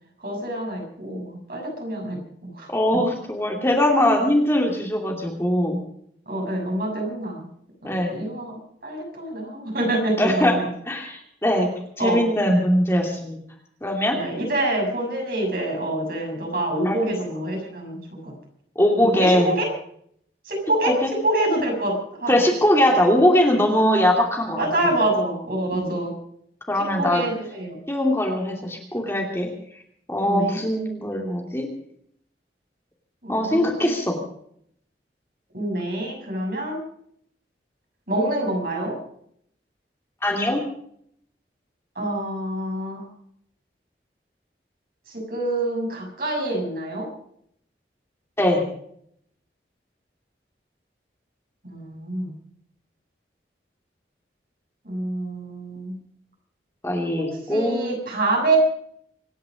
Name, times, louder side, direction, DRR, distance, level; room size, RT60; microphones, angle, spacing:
voice 1, 0.2-2.2 2.6-2.7 6.3-7.5 7.8-10.6 12.0-12.2 14.1-18.3 19.0-19.7 20.4-20.9 21.2-22.3 24.6-26.1 27.0-27.8 30.2-30.6 33.2-33.9 35.5-36.8 38.1-38.9 41.9-43.0 45.1-47.1 51.6-52.3 54.8-56.0 57.2-58.6, right 1 dB, 55° right, 0 dB, 6.6 m, -26 dB
voice 2, 2.7-5.8 7.8-8.2 10.2-10.6 10.9-11.7 12.0-13.4 13.8-14.2 16.8-17.0 18.8-19.5 20.8-21.1 22.3-24.6 25.7-25.9 26.7-27.3 27.9-29.5 30.1-31.7 33.3-34.2 40.2-40.6 48.4-48.6 56.8-57.9, left 1 dB, 15° left, 0 dB, 2.7 m, -21 dB
25.5 x 10.5 x 5.2 m, 0.68 s
head